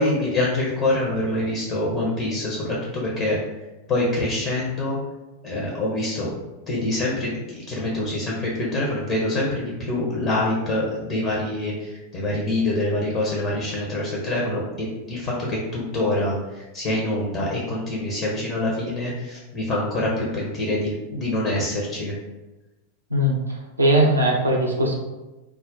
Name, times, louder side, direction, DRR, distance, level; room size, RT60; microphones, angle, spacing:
voice 1, 0.0-3.4 3.9-5.0 5.4-6.3 6.7-22.2, left 1 dB, 35° left, -4 dB, 0.6 m, -25 dB
voice 2, 23.1-24.9, right 1 dB, 80° right, -1 dB, 0.5 m, -20 dB
2.3 x 2.0 x 3.8 m, 1.1 s
figure-of-eight pair, 90°, 0 cm